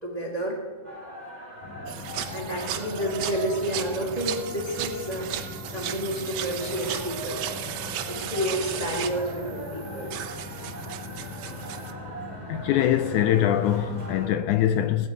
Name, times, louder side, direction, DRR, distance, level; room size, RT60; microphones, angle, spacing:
voice 1, 0.0-0.6 2.3-5.3 5.7-7.4 7.8-10.2, equal, 35° right, 0.6 m, -30 dB
sound 1, 0.8-14.3, right 2 dB, 20° right, 1.3 m, -41 dB
sound 2, 1.6-14.4, left 2 dB, 60° left, 3.3 m, -41 dB
sound 3, 1.9-11.9, right 10 dB, 85° right, 1.4 m, -36 dB
voice 2, 12.5-15.1, left 11 dB, 80° left, 1.8 m, -23 dB
18.0 x 8.6 x 4.9 m
omnidirectional pair, 3.8 m